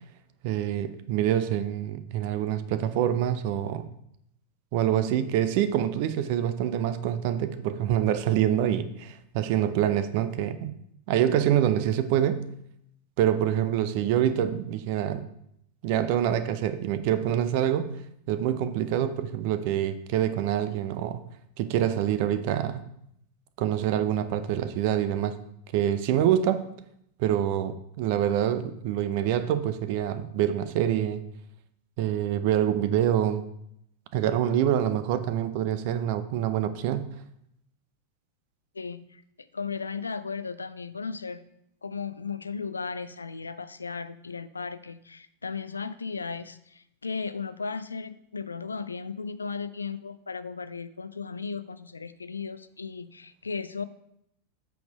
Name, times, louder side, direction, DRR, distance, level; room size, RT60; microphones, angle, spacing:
voice 1, 0.4-3.9 4.7-10.7 11.1-12.5 13.2-15.3 15.8-17.9 18.3-21.2 21.6-22.8 23.6-25.4 25.7-26.6 27.2-31.2 32.0-33.4 34.1-37.2, right 10 dB, 45° right, 12 dB, 0.6 m, -26 dB
voice 2, 38.7-39.2 39.5-41.4 41.8-53.8, left 5 dB, 75° left, 14 dB, 0.4 m, -36 dB
8.2 x 4.3 x 5.4 m, 0.76 s
figure-of-eight pair, 90°, 0 cm